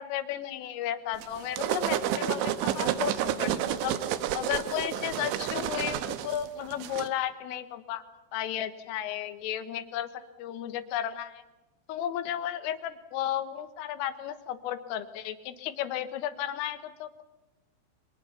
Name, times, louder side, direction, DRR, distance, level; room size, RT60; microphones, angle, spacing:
voice 1, 0.0-4.0 4.3-8.0 8.3-10.1 10.4-11.4 11.9-17.2, left 11 dB, 90° left, 10 dB, 3.9 m, -34 dB
sound 1, 1.2-7.1, right 11 dB, 75° right, 3.3 m, -30 dB
29.5 x 24.0 x 5.8 m, 1.0 s
omnidirectional pair, 5.7 m